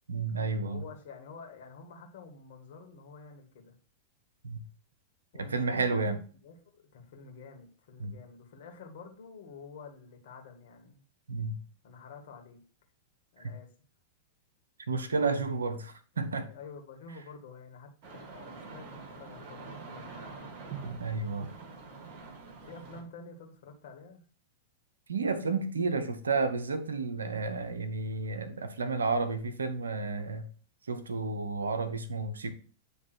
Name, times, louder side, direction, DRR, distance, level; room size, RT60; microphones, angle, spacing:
voice 1, 0.1-0.8 4.4-4.6 5.4-6.2 8.0-8.1 11.3-11.6 13.4-13.5 14.9-16.5 20.8-21.5 25.1-30.5 30.9-32.5, right 4 dB, 80° right, 0.8 m, -31 dB
voice 2, 0.6-3.7 5.3-11.0 11.8-12.6 13.3-13.7 16.5-17.9 18.2-20.5 22.6-24.2, left 5 dB, 60° left, 2.0 m, -49 dB
sound 1, 18.0-23.0, right 5 dB, 45° right, 2.0 m, -45 dB
9.5 x 3.4 x 4.5 m
figure-of-eight pair, 100°, 0 cm